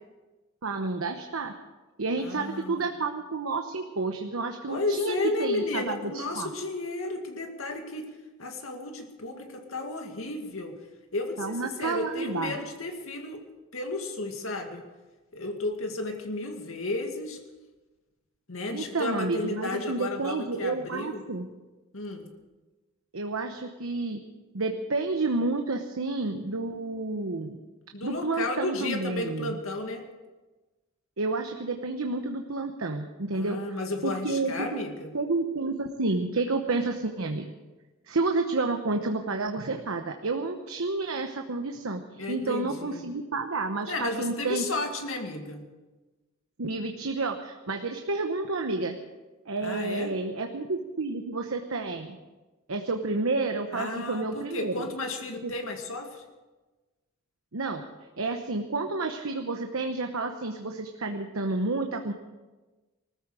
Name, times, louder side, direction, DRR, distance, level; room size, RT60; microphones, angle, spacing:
voice 1, 0.6-1.5 2.0-6.5 11.4-12.6 18.7-21.5 23.1-24.2 24.5-27.6 28.0-29.5 31.2-33.8 34.0-34.8 35.1-37.5 38.1-42.0 42.3-44.6 46.6-48.9 49.5-52.2 52.7-54.9 55.4-55.5 57.5-57.8 58.2-62.1, right 3 dB, 85° right, 5 dB, 1.0 m, -30 dB
voice 2, 2.2-2.9 4.7-8.1 8.4-10.8 11.1-13.4 13.7-14.8 15.3-17.4 18.5-21.2 21.9-22.3 27.9-30.0 33.3-35.1 42.1-43.0 43.9-45.6 49.6-50.1 53.7-56.2, left 2 dB, 75° left, 4 dB, 2.2 m, -33 dB
20.0 x 14.0 x 5.0 m, 1.2 s
head